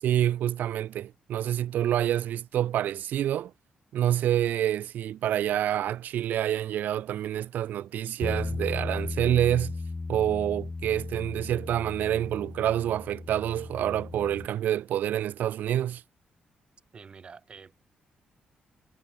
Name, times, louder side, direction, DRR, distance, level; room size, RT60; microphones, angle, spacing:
voice 1, 0.0-3.5 3.9-9.8 10.1-16.0, right 11 dB, 75° right, 0.7 m, -27 dB
Bass guitar, 8.2-14.5, left 3 dB, 20° left, 0.5 m, -36 dB
voice 2, 16.9-17.7, right 5 dB, 35° right, 3.5 m, -47 dB
cardioid pair, 130°, 3 cm